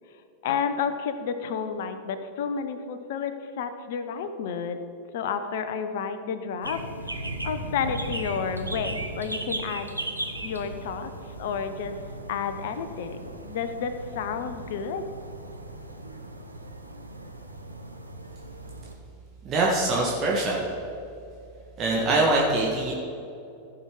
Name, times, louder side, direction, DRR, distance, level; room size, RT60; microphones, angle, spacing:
voice 1, 0.4-4.8 5.1-6.8 7.1-9.9 10.4-11.1 11.4-12.0 12.3-13.2 13.5-15.0, left 6 dB, 55° left, 9 dB, 0.8 m, -31 dB
sound 1, 6.6-18.9, right 1 dB, 85° right, 0.9 m, -37 dB
voice 2, 19.4-20.6 21.8-22.9, right 2 dB, 30° right, -4 dB, 1.6 m, -23 dB
15.0 x 5.9 x 5.0 m, 2.6 s
figure-of-eight pair, 90°, 0 cm